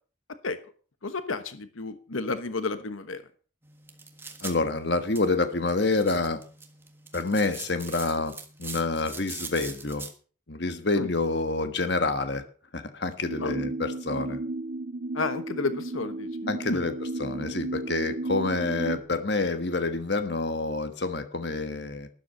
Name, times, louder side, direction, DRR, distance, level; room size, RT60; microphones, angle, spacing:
voice 1, 1.0-3.2 11.0-11.1 13.4-13.5 15.1-16.9, left 3 dB, 85° left, 11 dB, 1.2 m, -31 dB
sound 1, 3.6-10.1, right 4 dB, 10° right, 1.5 m, -43 dB
voice 2, 4.4-6.4 7.1-8.3 8.6-10.1 10.5-12.4 12.7-14.4 16.5-16.9 17.2-22.1, left 3 dB, 55° left, 9 dB, 1.4 m, -27 dB
sound 2, 13.2-19.0, right 2 dB, 75° right, 1.7 m, -34 dB
12.5 x 11.0 x 5.5 m, 0.40 s
head